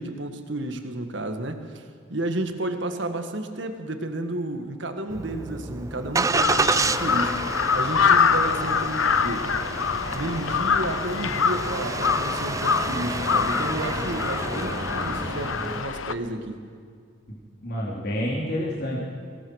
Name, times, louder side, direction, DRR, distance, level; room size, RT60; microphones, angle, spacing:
voice 1, 0.0-7.4 7.7-9.5 10.1-16.6, right 1 dB, 65° right, 7 dB, 1.7 m, -32 dB
Engine starting, 5.1-15.8, right 3 dB, 15° right, 0.4 m, -30 dB
Crow, 6.3-16.1, left 6 dB, 90° left, 0.9 m, -25 dB
voice 2, 17.3-19.0, equal, 55° left, -4 dB, 3.5 m, -29 dB
24.0 x 18.5 x 6.5 m, 2.2 s
head